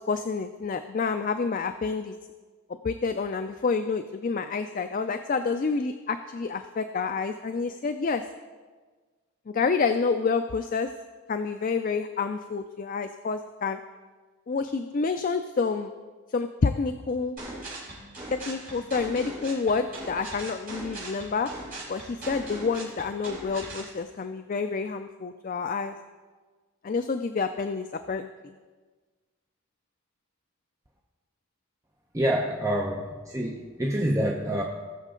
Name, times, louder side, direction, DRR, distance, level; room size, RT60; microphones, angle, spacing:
voice 1, 0.1-2.1 2.8-8.2 9.5-10.9 11.3-13.8 14.5-15.9 16.3-17.4 18.3-21.5 21.9-25.9 26.8-28.3, left 4 dB, 40° left, 8 dB, 0.3 m, -28 dB
sound 1, 17.4-23.9, right 1 dB, 40° right, 4.1 m, -39 dB
voice 2, 32.1-34.6, right 1 dB, 15° right, -1 dB, 0.7 m, -27 dB
19.5 x 6.5 x 3.8 m, 1.4 s
head